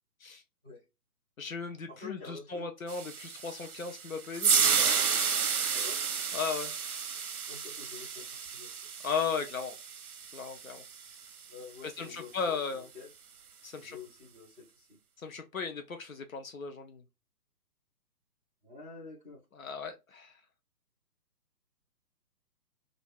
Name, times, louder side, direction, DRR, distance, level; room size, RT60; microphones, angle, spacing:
voice 1, 1.4-5.2 6.3-6.7 9.0-9.8 10.3-10.8 11.8-12.9 13.6-14.0 15.2-17.0 19.5-20.3, left 5 dB, 60° left, 0.6 m, -36 dB
voice 2, 1.9-2.7 5.7-6.0 7.5-8.7 11.5-13.1 13.7-15.0 18.6-19.4, left 4 dB, 10° left, 0.8 m, -48 dB
sound 1, 2.9-11.2, right 6 dB, 65° right, 0.7 m, -31 dB
3.3 x 2.5 x 2.3 m
figure-of-eight pair, 140°, 48 cm